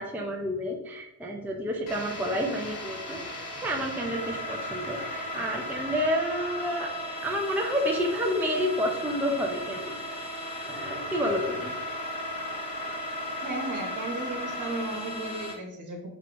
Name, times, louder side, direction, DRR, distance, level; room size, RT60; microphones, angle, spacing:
voice 1, 0.0-6.9 7.2-11.8, equal, 5° right, 0 dB, 0.5 m, -30 dB
sound 1, 1.9-15.5, left 1 dB, 80° left, 1.1 m, -35 dB
voice 2, 13.4-16.1, right 2 dB, 45° right, 1 dB, 1.3 m, -35 dB
4.5 x 2.3 x 3.8 m, 0.84 s
cardioid pair, 80°, 41 cm